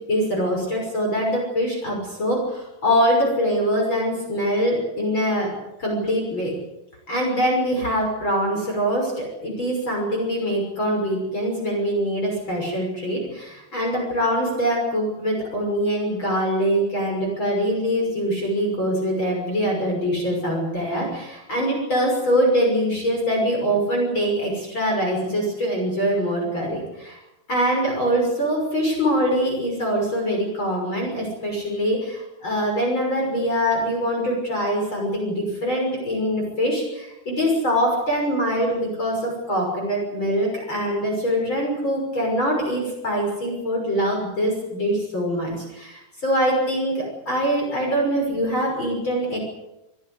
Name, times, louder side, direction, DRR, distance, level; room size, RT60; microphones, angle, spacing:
voice 1, 0.1-5.5 5.8-6.5 7.1-27.2 27.5-49.4, equal, 30° left, 0 dB, 6.8 m, -23 dB
27.0 x 17.0 x 8.1 m, 0.93 s
omnidirectional pair, 4.2 m